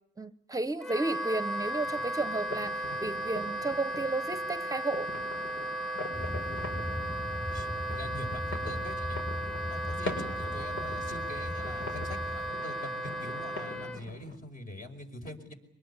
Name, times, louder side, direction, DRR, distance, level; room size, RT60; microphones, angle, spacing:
voice 1, 0.2-5.1, right 2 dB, 15° right, 12 dB, 0.9 m, -33 dB
Wind instrument woodwind instrument, 0.8-14.0, right 1 dB, ahead, 1.3 m, -35 dB
sound 1, 1.6-14.4, left 2 dB, 80° left, 5.8 m, -43 dB
sound 2, 6.1-12.5, left 1 dB, 20° left, 3.9 m, -39 dB
voice 2, 7.5-9.2 9.7-15.5, left 1 dB, 45° left, 4 dB, 5.4 m, -44 dB
24.0 x 20.0 x 9.9 m, 0.78 s
cardioid pair, 90°, 20 cm